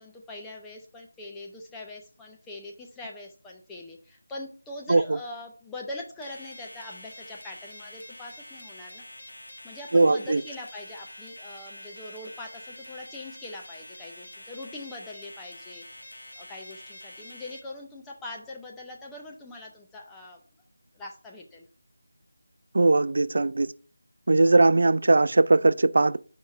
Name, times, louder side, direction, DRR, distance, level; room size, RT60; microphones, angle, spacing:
voice 1, 0.0-9.1 9.6-15.8 16.4-20.4 20.9-21.6, left 2 dB, 5° left, 0.6 m, -42 dB
sound 1, 6.2-17.6, left 1 dB, 90° left, 1.4 m, -46 dB
voice 2, 9.9-10.4 22.7-23.7 24.3-26.2, right 2 dB, 55° right, 0.3 m, -20 dB
4.7 x 4.5 x 5.2 m
figure-of-eight pair, 165°, 0 cm